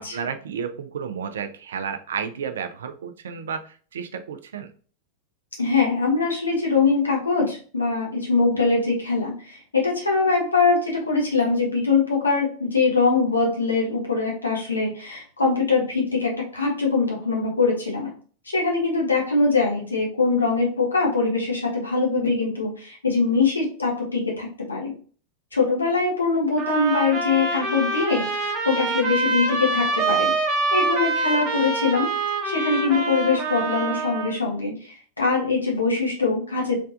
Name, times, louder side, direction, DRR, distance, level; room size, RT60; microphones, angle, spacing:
voice 1, 0.0-4.7, right 7 dB, 65° right, 9 dB, 0.4 m, -32 dB
voice 2, 5.6-18.1 18.4-24.9 25.5-30.3 30.7-32.1 32.4-36.8, left 4 dB, 80° left, -2 dB, 0.9 m, -23 dB
sound 1, 26.6-34.4, right 3 dB, 30° right, 0.9 m, -25 dB
3.4 x 3.3 x 2.4 m, 0.41 s
figure-of-eight pair, 90°, 0 cm